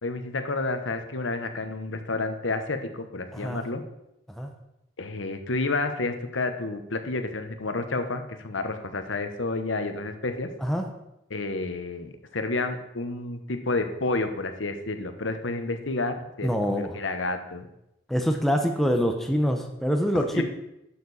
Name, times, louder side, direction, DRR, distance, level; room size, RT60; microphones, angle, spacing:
voice 1, 0.0-3.8 5.0-10.5 11.3-17.7 20.3-20.4, left 3 dB, 85° left, 7 dB, 1.1 m, -30 dB
voice 2, 3.3-3.6 4.3-4.5 10.6-10.9 16.4-17.0 18.1-20.4, equal, ahead, 3 dB, 0.7 m, -25 dB
11.5 x 6.8 x 4.2 m, 0.85 s
head